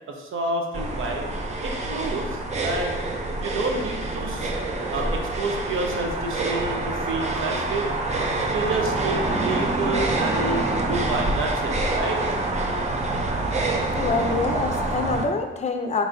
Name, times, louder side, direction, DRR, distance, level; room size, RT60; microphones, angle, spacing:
voice 1, 0.1-1.2 1.6-2.9 3.3-4.5 4.9-7.9 8.5-12.2, right 2 dB, 75° right, 2 dB, 0.7 m, -29 dB
sound 1, 0.7-15.2, right 2 dB, 35° right, 0.5 m, -26 dB
voice 2, 14.0-16.0, left 4 dB, 35° left, 5 dB, 0.5 m, -26 dB
4.5 x 4.1 x 2.6 m, 1.1 s
wide cardioid pair, 135°, 21 cm